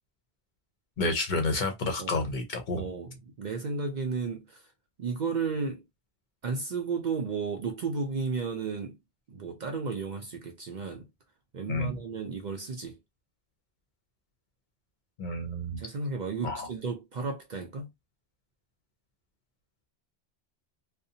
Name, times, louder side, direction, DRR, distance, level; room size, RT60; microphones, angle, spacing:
voice 1, 1.0-2.8 11.7-12.0 15.2-15.8 16.4-16.7, left 2 dB, 55° left, 0.7 m, -30 dB
voice 2, 2.7-4.7 5.0-5.8 6.4-9.0 9.3-11.1 11.5-13.0 15.8-17.9, right 4 dB, 55° right, 0.5 m, -33 dB
2.5 x 2.0 x 2.7 m
omnidirectional pair, 1.1 m